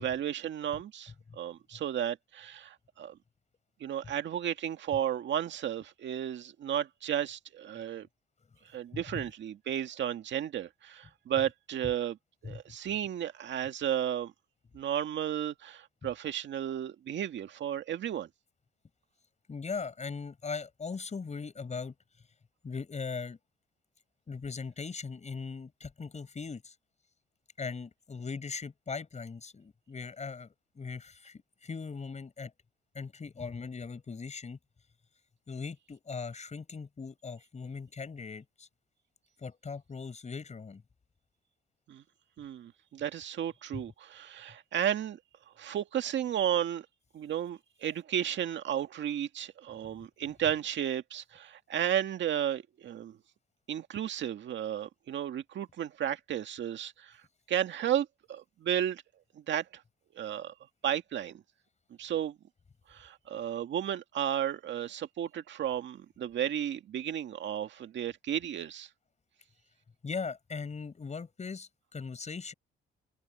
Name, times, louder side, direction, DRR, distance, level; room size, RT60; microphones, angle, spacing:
voice 1, 0.0-3.2 3.8-8.1 8.7-12.2 12.4-14.3 14.7-18.3 41.9-42.0 42.4-45.2 45.6-46.9 47.1-53.2 53.7-57.2 57.5-59.0 59.3-59.8 60.1-60.5 60.8-61.4 62.0-62.4 62.9-68.9, right 10 dB, 65° right, 2.0 m, -33 dB
voice 2, 8.9-9.2 12.4-12.6 16.0-16.1 19.5-21.9 22.6-23.4 24.3-26.7 27.6-32.5 32.9-34.6 35.5-38.7 39.4-40.8 43.7-43.8 70.0-72.5, left 5 dB, 35° left, 5.9 m, -39 dB
cardioid pair, 90°, 20 cm